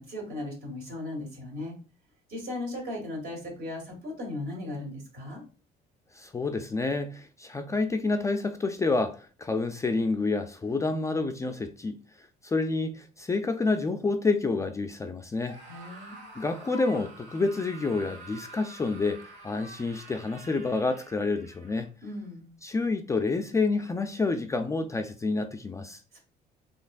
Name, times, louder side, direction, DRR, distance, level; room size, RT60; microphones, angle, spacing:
voice 1, 0.0-1.8 2.3-5.4 15.7-16.2 22.0-22.5 26.1-26.2, left 1 dB, 60° right, 2.1 m, -37 dB
voice 2, 6.1-12.0 12.4-15.6 16.4-21.9 22.6-26.0, left 3 dB, 20° left, 0.3 m, -28 dB
Screaming, 15.4-21.9, right 2 dB, 85° right, 1.5 m, -47 dB
4.0 x 3.3 x 2.4 m
cardioid pair, 110°, 17 cm